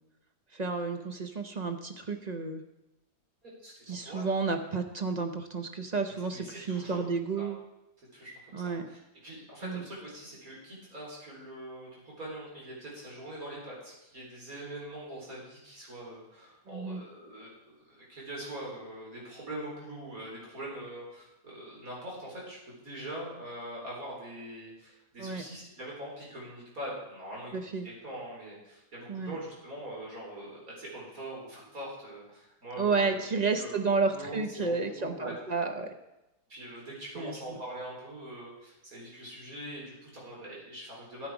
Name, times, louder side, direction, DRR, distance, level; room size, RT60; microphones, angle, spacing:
voice 1, 0.5-2.6 3.9-7.6 8.5-8.9 9.6-9.9 16.7-17.0 25.2-25.4 27.5-27.9 29.1-29.4 32.8-35.9 37.2-37.6, right 4 dB, 40° right, 6 dB, 0.6 m, -31 dB
voice 2, 3.4-4.3 6.1-7.0 7.3-7.5 8.1-17.6 17.9-33.2 33.5-33.8 34.0-35.3 36.5-41.3, right 1 dB, 60° right, -4 dB, 4.6 m, -43 dB
13.0 x 8.3 x 4.9 m, 0.94 s
omnidirectional pair, 1.7 m